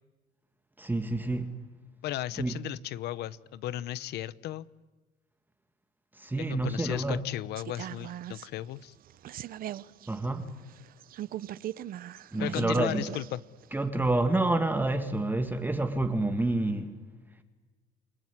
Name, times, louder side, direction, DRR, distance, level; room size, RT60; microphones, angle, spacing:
voice 1, 0.8-1.6 2.4-2.5 6.2-7.3 10.1-10.5 12.3-13.1 13.7-16.9, right 2 dB, 10° right, 1.8 m, -28 dB
voice 2, 2.0-4.7 6.4-8.9 12.4-13.4, left 13 dB, 75° left, 1.0 m, -35 dB
sound 1, 7.6-13.4 13.6-13.7, right 12 dB, 60° right, 0.8 m, -39 dB
29.0 x 18.5 x 9.8 m
cardioid pair, 110°, 17 cm